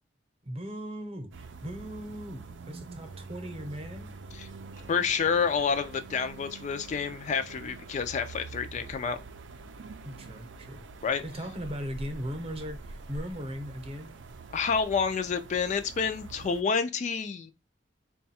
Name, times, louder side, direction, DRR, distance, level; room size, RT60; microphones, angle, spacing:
voice 1, 0.4-4.1 10.0-10.8 11.2-14.1, equal, 35° right, 0.7 m, -38 dB
sound 1, 1.3-16.6, right 3 dB, 90° right, 0.5 m, -45 dB
voice 2, 4.9-9.2 11.0-11.2 14.5-17.5, left 6 dB, 40° left, 0.3 m, -28 dB
3.9 x 2.3 x 4.1 m
head